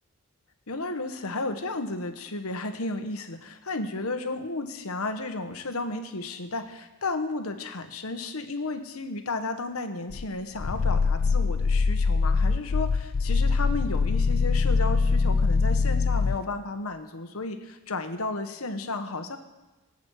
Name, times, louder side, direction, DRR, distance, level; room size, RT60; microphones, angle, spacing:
voice 1, 0.7-19.4, left 2 dB, 75° left, 7 dB, 1.3 m, -33 dB
Growling, 10.1-16.4, left 4 dB, 45° left, 0.4 m, -23 dB
23.0 x 8.4 x 4.8 m, 1.1 s
head